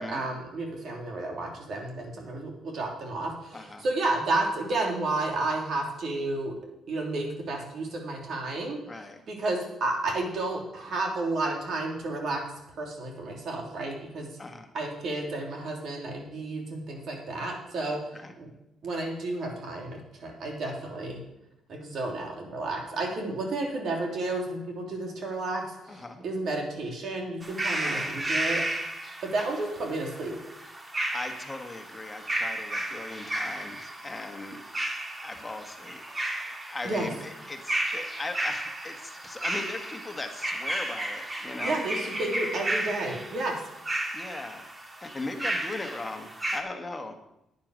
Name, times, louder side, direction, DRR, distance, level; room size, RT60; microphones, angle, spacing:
voice 1, 0.0-6.5 6.9-8.8 9.3-12.4 12.8-14.3 14.7-18.0 18.4-18.5 18.8-21.2 21.7-28.6 29.2-30.4 36.8-37.1 41.6-43.6, right 2 dB, 60° right, 1 dB, 3.1 m, -31 dB
voice 2, 3.5-3.8 8.8-9.2 14.4-14.7 17.9-18.3 25.9-26.2 27.8-28.3 30.8-34.6 35.2-36.0 36.4-41.8 44.1-44.7 45.0-47.1, left 2 dB, 20° left, 5 dB, 1.6 m, -39 dB
sound 1, 27.4-46.6, right 1 dB, 20° right, 1.9 m, -33 dB
9.8 x 9.5 x 6.4 m, 0.87 s
cardioid pair, 90°, 0 cm